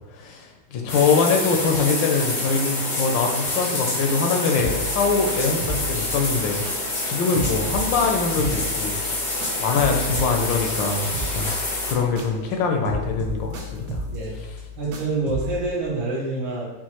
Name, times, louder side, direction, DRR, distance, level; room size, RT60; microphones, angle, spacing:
voice 1, 0.1-6.6 7.0-9.0 9.6-14.0, left 4 dB, 75° left, 3 dB, 1.2 m, -23 dB
sound 1, 0.9-11.9, left 2 dB, 55° left, 0.5 m, -27 dB
sound 2, 4.6-7.1 7.3-12.6 12.8-15.6, equal, 90° right, 1.6 m, -33 dB
voice 2, 14.1-14.4 14.8-16.7, right 3 dB, 60° right, -6 dB, 1.5 m, -27 dB
5.7 x 2.4 x 2.9 m, 1.2 s
omnidirectional pair, 2.1 m